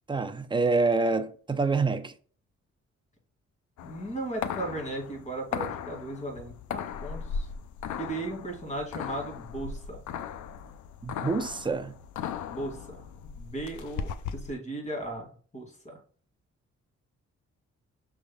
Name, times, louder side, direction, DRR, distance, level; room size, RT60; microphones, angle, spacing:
voice 1, 0.1-2.1 11.0-12.0, right 3 dB, 15° right, 0.5 m, -26 dB
sound 1, 3.8-14.5, left 7 dB, 85° left, 0.5 m, -37 dB
voice 2, 3.8-7.5 8.0-10.0 12.5-15.3 15.5-16.0, right 2 dB, 25° left, 2.2 m, -36 dB
6.1 x 3.5 x 2.3 m
cardioid pair, 80°, 29 cm